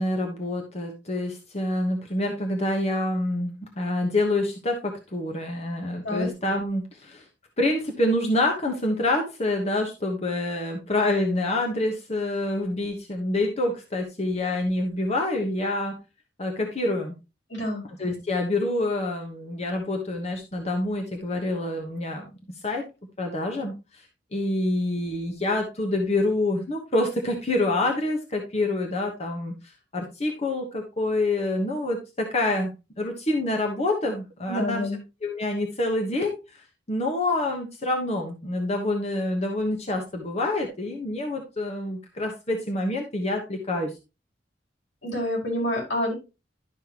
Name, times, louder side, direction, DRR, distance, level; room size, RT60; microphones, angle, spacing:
voice 1, 0.0-7.3 7.6-15.9 16.4-17.1 18.0-22.3 22.6-22.8 23.2-24.0 24.3-32.7 33.0-34.9 35.2-43.9, left 2 dB, 35° left, 2 dB, 1.1 m, -27 dB
voice 2, 17.5-17.8 34.5-35.0 45.0-46.1, left 1 dB, 85° left, -3 dB, 4.8 m, -27 dB
12.0 x 5.6 x 2.9 m, 0.27 s
head